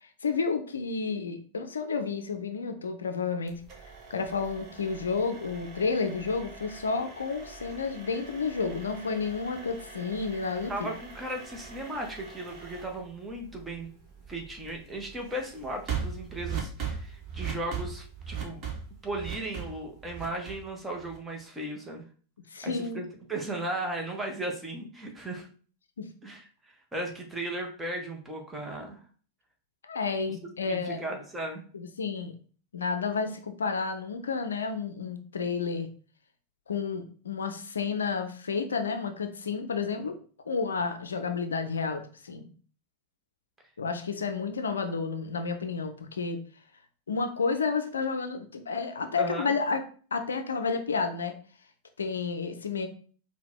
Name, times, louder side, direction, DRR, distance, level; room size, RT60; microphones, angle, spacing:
voice 1, 0.0-3.6 4.1-10.9 22.5-23.0 26.0-26.1 29.8-31.0 31.7-32.3 32.7-35.9 36.7-40.2 40.5-42.5 43.8-46.4 47.1-49.8 50.1-51.3 52.0-52.9, left 5 dB, 70° left, 8 dB, 0.5 m, -31 dB
sound 1, 3.5-21.4, right 6 dB, 35° right, 1.3 m, -41 dB
voice 2, 10.7-13.9 14.3-18.6 19.0-22.0 22.6-25.5 26.2-29.0 30.7-31.7 49.2-49.6, right 1 dB, 10° right, 1 dB, 1.1 m, -36 dB
4.7 x 2.3 x 3.5 m, 0.42 s
figure-of-eight pair, 90°, 0 cm